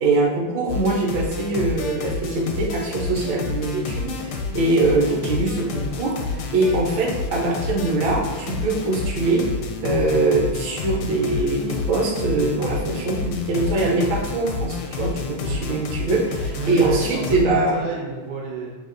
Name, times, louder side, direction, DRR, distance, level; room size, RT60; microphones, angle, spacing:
voice 1, 0.0-9.5 9.8-17.8, right 2 dB, 65° right, -3 dB, 1.5 m, -22 dB
sound 1, 0.7-17.5, left 4 dB, 75° left, 1.1 m, -30 dB
voice 2, 15.5-15.8 16.5-18.8, right 5 dB, 85° right, -2 dB, 1.6 m, -30 dB
6.2 x 2.5 x 2.5 m, 1.4 s
omnidirectional pair, 2.4 m